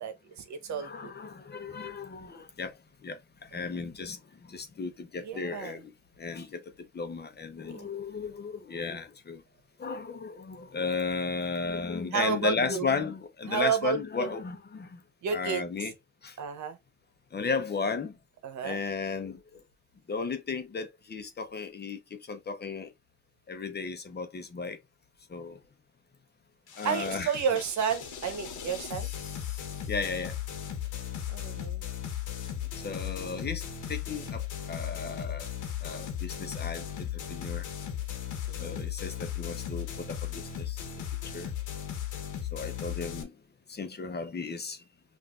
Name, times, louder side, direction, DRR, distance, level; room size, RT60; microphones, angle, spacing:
voice 1, 0.0-1.1 5.2-5.8 7.7-7.9 12.1-12.9 13.5-14.3 15.2-15.7 16.4-16.8 18.4-18.8 26.8-29.1 31.3-31.8 38.5-38.8, right 6 dB, 70° right, 1.0 m, -31 dB
voice 2, 0.8-2.8 3.0-5.9 6.2-9.4 9.8-15.0 15.3-15.9 16.2-16.4 17.3-18.1 18.6-19.6 20.1-22.9 23.5-24.8 25.3-25.6 26.8-27.3 29.9-30.3 32.8-33.6 33.9-35.5 35.8-37.6 38.6-40.8 41.3-41.5 42.5-43.3 43.7-44.8, left 4 dB, 35° left, 0.9 m, -35 dB
sound 1, 26.7-43.2, left 10 dB, 85° left, 1.2 m, -37 dB
5.7 x 2.7 x 2.4 m
cardioid pair, 90°, 30 cm